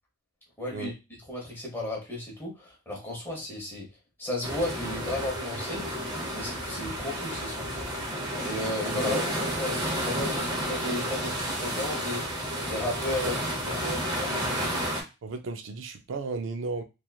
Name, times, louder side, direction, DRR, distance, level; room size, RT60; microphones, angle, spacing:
voice 1, 0.6-0.9 1.3-3.9 4.2-5.8 6.3-7.9 8.4-9.2 9.6-12.3 12.7-14.3, left 1 dB, 10° left, 1.0 m, -34 dB
sound 1, 4.4-15.0, equal, 20° right, 0.8 m, -31 dB
voice 2, 15.2-16.8, right 3 dB, 70° right, 0.4 m, -34 dB
2.9 x 2.4 x 2.3 m
head